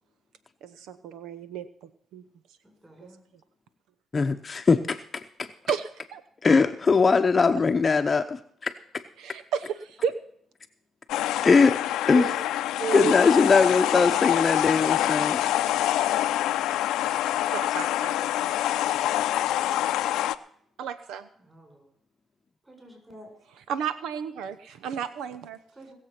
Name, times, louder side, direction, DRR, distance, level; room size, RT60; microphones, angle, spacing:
voice 1, 0.6-1.7 2.1-2.2 5.7-6.2 9.2-10.1 12.1-12.4 12.8-13.1 16.1-16.2 17.2-18.5 18.9-19.0 20.8-21.3 23.7-25.6, right 8 dB, 85° right, 14 dB, 0.8 m, -32 dB
voice 2, 2.6-3.2 21.3-21.9 22.6-23.3 25.7-26.0, right 1 dB, 15° right, 3 dB, 7.2 m, -50 dB
voice 3, 4.1-5.5 6.4-8.7 11.4-12.3 12.9-15.4, left 4 dB, 30° left, 7 dB, 0.8 m, -21 dB
sound 1, 11.1-20.4, left 13 dB, 90° left, 0.6 m, -26 dB
19.5 x 7.5 x 5.8 m, 0.66 s
cardioid pair, 90°, 0 cm